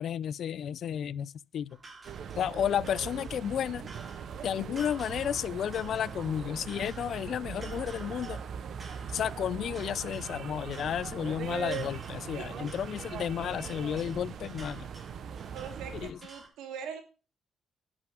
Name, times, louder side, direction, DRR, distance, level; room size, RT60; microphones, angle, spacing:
voice 1, 0.0-1.8 2.4-3.9 4.4-8.4 9.1-14.9 15.9-16.2, left 9 dB, 65° left, 0.4 m, -32 dB
sound 1, 1.7-16.5, right 3 dB, 30° right, 3.4 m, -51 dB
sound 2, 2.0-16.1, right 8 dB, 65° right, 0.8 m, -40 dB
voice 2, 15.5-17.0, right 7 dB, 90° right, 2.3 m, -41 dB
10.5 x 6.1 x 6.1 m
cardioid pair, 90°, 0 cm